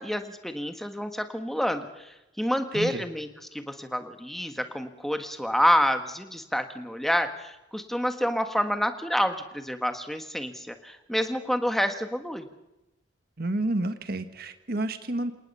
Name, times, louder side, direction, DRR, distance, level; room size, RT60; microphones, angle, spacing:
voice 1, 0.0-12.5, equal, ahead, 7 dB, 1.5 m, -28 dB
voice 2, 2.7-3.1 13.4-15.3, right 2 dB, 50° right, 9 dB, 1.4 m, -30 dB
28.0 x 18.5 x 5.5 m, 0.97 s
head